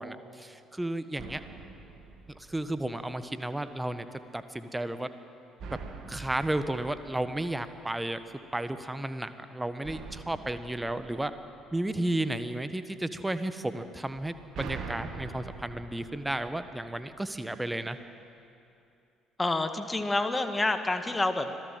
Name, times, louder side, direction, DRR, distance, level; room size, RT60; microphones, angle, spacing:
voice 1, 0.0-1.4 2.3-5.1 5.7-5.8 6.1-8.2 8.5-11.3 11.7-18.0, right 1 dB, 10° right, 11 dB, 1.4 m, -33 dB
sound 1, 1.2-3.1 5.6-8.0 9.8-12.1 14.1-17.1, right 4 dB, 50° right, 2.5 m, -44 dB
voice 2, 19.4-21.5, left 2 dB, 15° left, 8 dB, 1.8 m, -28 dB
25.5 x 18.0 x 7.7 m, 2.6 s
figure-of-eight pair, 50°, 0 cm